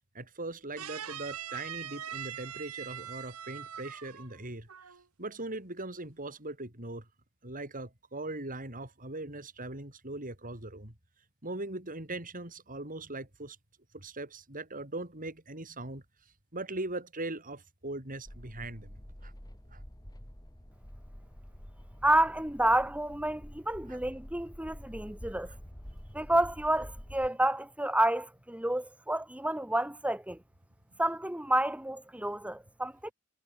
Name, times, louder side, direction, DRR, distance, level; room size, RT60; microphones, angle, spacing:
voice 1, 0.1-4.7 5.2-7.1 7.4-10.9 11.4-13.6 13.9-16.0 16.5-19.3 19.7-19.8 23.9-24.0, right 2 dB, 40° right, 7.2 m, -40 dB
sound 1, 0.8-4.4 4.7-5.0, right 9 dB, 90° right, 1.4 m, -42 dB
sound 2, 18.2-27.3, equal, 20° left, 2.9 m, -48 dB
voice 2, 22.0-25.5 26.1-30.4 31.0-33.1, right 1 dB, 5° right, 1.4 m, -29 dB
head